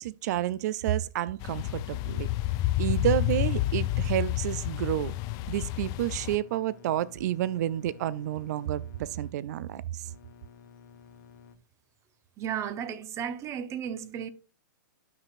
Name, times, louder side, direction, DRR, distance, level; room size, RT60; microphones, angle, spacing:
voice 1, 0.0-2.3 2.8-5.1 5.5-10.0, right 12 dB, 55° right, 0.4 m, -30 dB
sound 1, 1.4-11.6, left 7 dB, 65° left, 0.9 m, -53 dB
sound 2, 1.4-6.4, left 15 dB, 35° left, 0.4 m, -29 dB
voice 2, 12.4-14.3, right 8 dB, 25° right, 0.8 m, -34 dB
12.5 x 5.9 x 2.5 m
hypercardioid pair, 120°, 11 cm